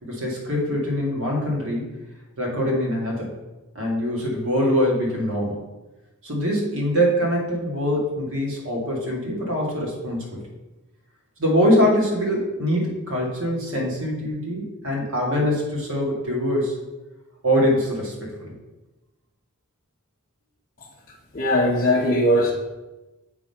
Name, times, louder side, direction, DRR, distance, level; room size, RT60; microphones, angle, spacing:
voice 1, 0.0-1.9 2.4-3.3 3.7-5.6 6.2-10.4 11.4-16.8 17.4-18.5, equal, 60° right, -3 dB, 2.3 m, -23 dB
voice 2, 21.3-22.5, left 1 dB, 40° left, -5 dB, 0.9 m, -19 dB
7.7 x 3.8 x 5.8 m, 1.1 s
head